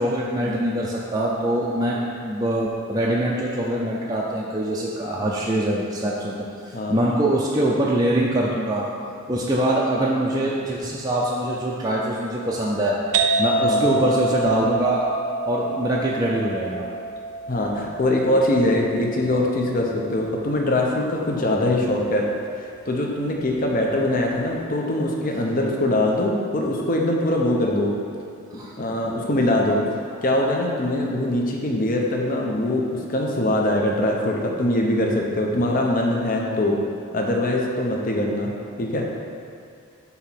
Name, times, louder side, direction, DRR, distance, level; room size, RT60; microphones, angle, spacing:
voice 1, 0.0-2.0 2.2-8.9 9.3-13.0 13.4-15.1 15.5-16.9 28.5-28.9, right 1 dB, 15° right, -5 dB, 0.5 m, -23 dB
sound 1, 13.1-20.6, right 3 dB, 80° right, 0.5 m, -27 dB
voice 2, 13.6-13.9 17.5-22.3 22.9-27.9 28.5-29.8 30.2-36.8 37.1-38.5 38.8-39.0, left 1 dB, 40° left, -1 dB, 0.7 m, -22 dB
7.9 x 3.0 x 5.8 m, 2.4 s
head